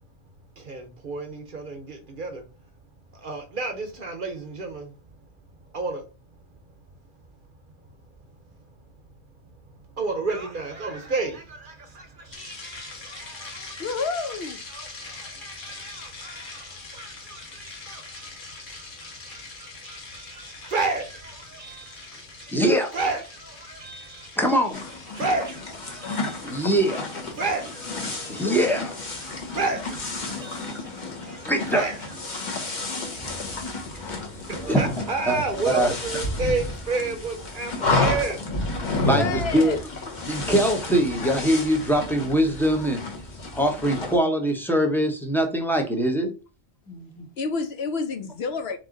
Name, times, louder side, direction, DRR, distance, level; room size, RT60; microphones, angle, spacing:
voice 1, 0.5-14.3 14.7-22.7 22.9-24.4 25.1-26.7 27.3-28.6 29.1-39.1, right 3 dB, 50° right, 0.9 m, -33 dB
sound 1, 12.3-28.6, left 3 dB, 90° left, 1.5 m, -43 dB
voice 2, 13.8-14.6 28.4-28.7 39.2-39.8 47.4-48.8, left 4 dB, 65° left, 0.8 m, -29 dB
voice 3, 22.5-22.9 24.4-24.9 26.4-27.1 28.3-28.9 31.5-31.9 34.3-34.4 34.7-34.8 35.3-35.4 35.7-35.9 39.0-39.8 40.3-43.1 43.5-46.3 46.9-47.3, right 1 dB, ahead, 0.6 m, -23 dB
sound 2, 24.7-44.2, left 2 dB, 40° left, 1.0 m, -31 dB
3.7 x 3.1 x 3.8 m
omnidirectional pair, 1.3 m